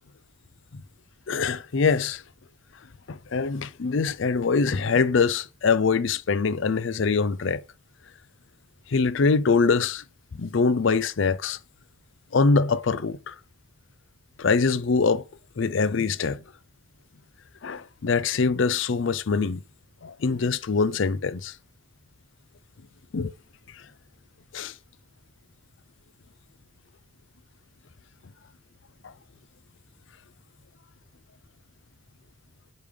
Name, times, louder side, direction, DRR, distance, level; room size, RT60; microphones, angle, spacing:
voice 1, 1.3-2.2 3.1-7.6 8.9-10.0 10.3-11.6 12.3-13.3 14.4-15.2 15.6-16.4 17.6-19.6 20.0-21.5 23.1-23.3 24.5-24.7 29.0-29.1, left 4 dB, 60° left, 0.5 m, -23 dB
5.3 x 4.9 x 5.1 m
head